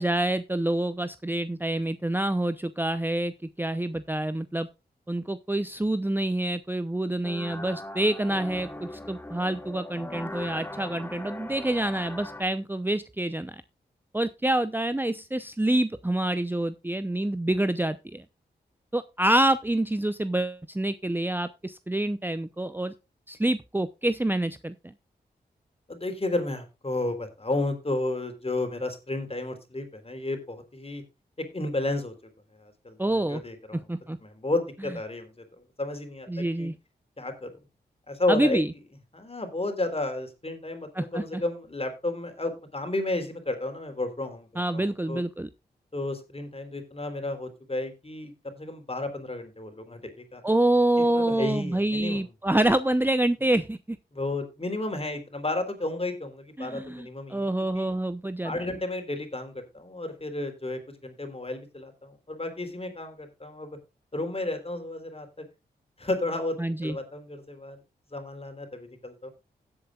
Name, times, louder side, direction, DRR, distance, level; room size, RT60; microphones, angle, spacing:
voice 1, 0.0-4.7 5.1-13.6 14.1-18.2 18.9-22.9 23.3-24.7 33.0-33.4 33.9-34.2 36.3-36.7 38.3-38.7 40.9-41.4 44.6-45.5 50.4-54.0 56.6-58.6 66.6-67.0, right 1 dB, 10° right, 12 dB, 0.7 m, -27 dB
sound 1, 7.2-12.4, left 1 dB, 10° left, 1.5 m, -39 dB
voice 2, 25.9-31.0 31.4-32.1 32.6-33.8 34.2-35.4 35.8-36.7 37.2-37.5 38.1-38.6 39.1-45.2 45.9-50.4 51.1-52.2 54.1-57.5 57.7-57.8 58.4-63.8 64.1-65.4 66.0-66.6 66.8-67.8 68.1-69.3, left 2 dB, 35° left, 6 dB, 3.7 m, -32 dB
16.5 x 7.9 x 2.4 m, 0.27 s
cardioid pair, 40°, 18 cm